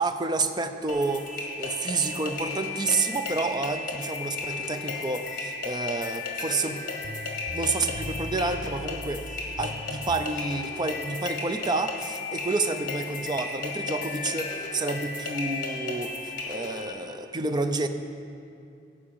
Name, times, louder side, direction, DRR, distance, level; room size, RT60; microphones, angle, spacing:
voice 1, 0.0-6.8 7.5-17.9, right 3 dB, 25° right, 8 dB, 0.5 m, -29 dB
sound 1, 0.9-16.9, left 3 dB, 50° left, 1.7 m, -34 dB
sound 2, 7.0-10.3, left 1 dB, 85° left, 0.6 m, -39 dB
13.5 x 5.0 x 8.6 m, 2.5 s
head